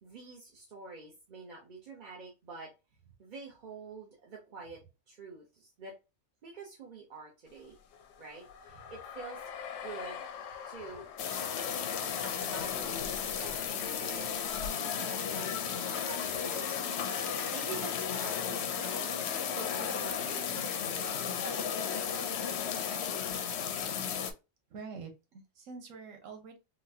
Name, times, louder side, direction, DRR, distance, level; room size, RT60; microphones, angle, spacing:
voice 1, 0.0-2.7 3.2-4.8 5.1-6.0 6.4-7.8 8.2-9.4 9.8-11.1 12.2-14.3 14.7-15.7 16.0-16.8 17.5-21.2 21.5-22.4 22.8-23.2, right 4 dB, 45° right, 0.8 m, -47 dB
sound 1, 7.6-14.7, left 7 dB, 90° left, 1.0 m, -44 dB
sound 2, 11.2-24.3, left 7 dB, 65° left, 0.7 m, -34 dB
voice 2, 24.7-26.6, right 5 dB, 90° right, 1.3 m, -46 dB
4.0 x 2.2 x 2.6 m
omnidirectional pair, 1.3 m